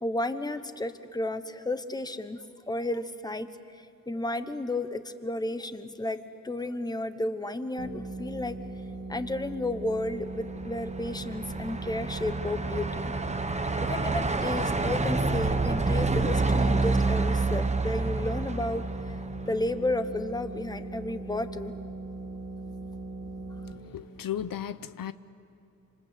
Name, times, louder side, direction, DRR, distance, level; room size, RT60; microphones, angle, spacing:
voice 1, 0.0-2.4 2.7-3.5 4.1-6.2 6.4-8.6 9.1-13.1 13.8-18.9 19.5-21.7, left 2 dB, 10° left, 1.1 m, -32 dB
sound 1, 7.8-23.7, right 2 dB, 90° right, 4.1 m, -39 dB
Truck, 10.3-19.7, right 3 dB, 20° right, 1.0 m, -28 dB
voice 2, 23.9-25.1, left 10 dB, 75° left, 0.8 m, -35 dB
27.0 x 26.5 x 8.3 m
wide cardioid pair, 125°, 34 cm